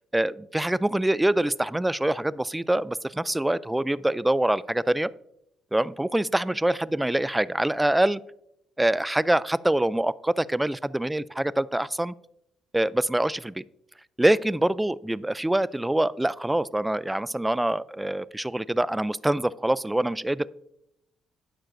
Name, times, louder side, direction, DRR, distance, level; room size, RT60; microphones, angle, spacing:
voice 1, 0.0-5.1 5.7-8.2 8.8-12.1 12.7-13.6 14.2-20.5, right 1 dB, 10° right, 19 dB, 0.3 m, -25 dB
12.0 x 9.2 x 2.6 m, 0.78 s
cardioid pair, 90°, 0 cm